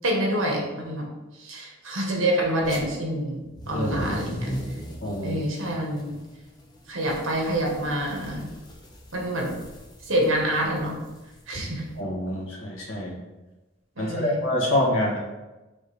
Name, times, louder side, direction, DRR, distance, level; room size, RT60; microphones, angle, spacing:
voice 1, 0.0-1.1 1.4-4.5 5.2-6.1 6.9-8.4 9.1-9.5 10.1-11.0 11.5-11.8 14.0-14.4, right 1 dB, 75° right, -1 dB, 1.6 m, -27 dB
sound 1, 2.6-2.8 3.4-11.9, equal, 20° left, 0.9 m, -38 dB
voice 2, 5.0-5.4 11.9-13.2 14.0-15.2, left 1 dB, 70° left, -4 dB, 1.9 m, -26 dB
5.2 x 3.6 x 5.1 m, 1.1 s
head